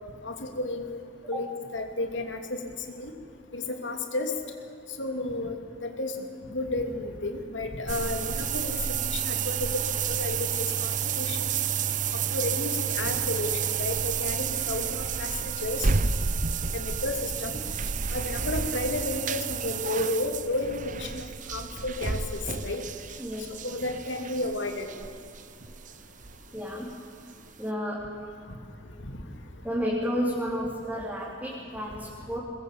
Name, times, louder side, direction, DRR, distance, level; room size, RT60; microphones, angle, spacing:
voice 1, 0.2-1.0 1.3-1.5 1.7-2.6 3.0-3.1 3.5-4.3 5.0-5.6 5.8-6.2 6.5-8.8 9.1-9.8 10.1-10.5 10.8-11.5 12.3-15.9 16.7-17.6 18.1-21.2 21.5-22.8 23.6-24.9, left 2 dB, 75° left, 4 dB, 2.7 m, -32 dB
sound 1, 7.9-26.6 26.9-27.0 27.5-27.6, right 6 dB, 45° right, 0.8 m, -30 dB
voice 2, 23.2-23.6 26.5-26.9 27.6-28.1 29.6-32.4, equal, 10° right, -5 dB, 3.6 m, -31 dB
22.5 x 20.5 x 8.6 m, 2.4 s
head